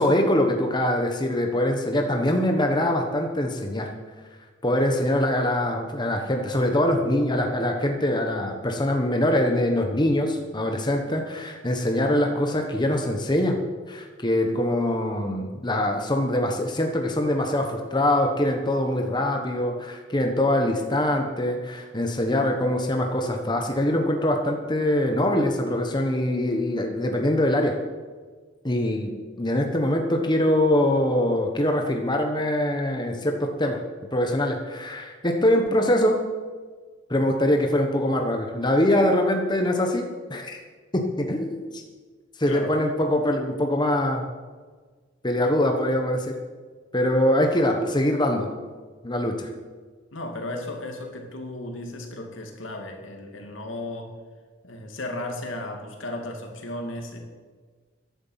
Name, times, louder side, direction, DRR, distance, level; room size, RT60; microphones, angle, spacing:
voice 1, 0.0-3.9 4.6-13.6 13.9-27.8 28.6-33.8 34.1-36.2 37.1-40.6 40.9-41.8 42.4-44.2 45.2-46.3 46.9-48.5 49.0-49.5, left 1 dB, 25° left, 3 dB, 1.3 m, -23 dB
voice 2, 50.1-54.1 54.6-57.2, left 1 dB, 80° left, 3 dB, 2.7 m, -35 dB
15.0 x 11.0 x 5.8 m, 1.4 s
head